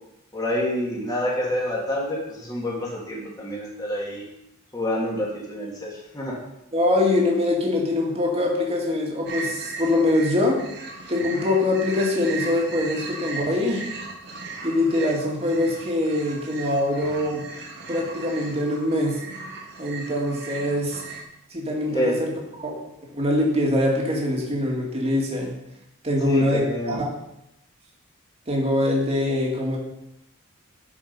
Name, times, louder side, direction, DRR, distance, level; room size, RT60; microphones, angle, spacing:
voice 1, 0.3-4.2 4.7-6.4 21.9-22.2 26.3-27.0, left 1 dB, 20° left, -4 dB, 2.3 m, -27 dB
voice 2, 6.7-10.6 11.1-13.8 14.6-17.4 17.9-19.2 19.8-21.0 21.5-22.3 22.6-25.5 26.0-27.0 28.5-29.8, left 1 dB, 30° right, -2 dB, 2.1 m, -23 dB
sound 1, 9.2-21.2, right 3 dB, 55° right, 1.4 m, -37 dB
11.5 x 5.2 x 5.4 m, 0.86 s
head